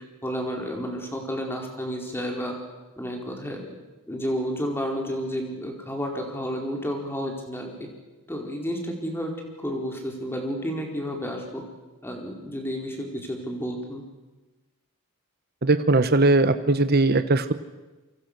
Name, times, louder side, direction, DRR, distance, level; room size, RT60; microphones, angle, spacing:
voice 1, 0.2-2.5 3.0-3.8 4.1-7.9 8.3-9.3 9.6-11.6 12.0-14.0, equal, 10° left, 1 dB, 4.5 m, -31 dB
voice 2, 15.6-17.5, right 2 dB, 45° right, 11 dB, 1.1 m, -20 dB
28.0 x 24.5 x 6.8 m, 1.2 s
head